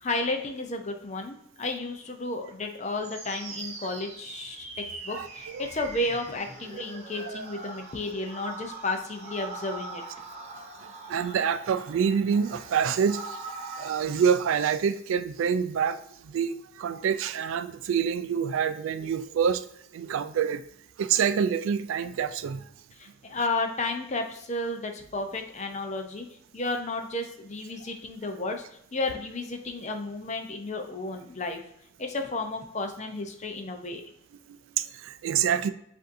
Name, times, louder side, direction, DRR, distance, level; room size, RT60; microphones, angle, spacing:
voice 1, 0.0-10.0 23.0-26.3 26.5-28.6 28.9-31.6 32.0-34.0, left 2 dB, 35° left, 5 dB, 0.5 m, -32 dB
sound 1, 3.0-14.3, right 3 dB, 30° right, 0.7 m, -42 dB
voice 2, 5.1-5.7 6.7-6.8 10.8-13.5 13.8-19.6 19.9-20.6 21.0-22.7 34.5-35.7, right 7 dB, 70° right, 12 dB, 0.3 m, -27 dB
7.6 x 2.7 x 2.6 m, 0.75 s
head